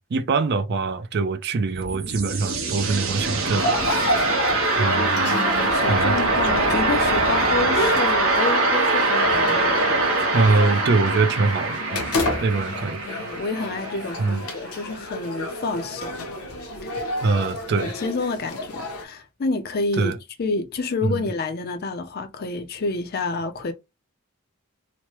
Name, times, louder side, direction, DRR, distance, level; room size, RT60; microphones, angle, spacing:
voice 1, 0.0-3.7 4.8-5.3 5.9-6.2 10.3-12.1 12.4-13.0 14.2-14.4 17.2-17.9 20.0-20.2 21.0-21.2, right 3 dB, 50° right, 0.4 m, -23 dB
sound 1, 1.6-14.4, right 2 dB, 70° right, 1.0 m, -23 dB
sound 2, 3.6-19.0, left 1 dB, 75° left, 0.8 m, -30 dB
voice 2, 5.2-9.8 12.7-16.2 16.8-17.1 17.8-23.7, left 3 dB, 45° left, 0.5 m, -29 dB
3.1 x 2.1 x 2.9 m
head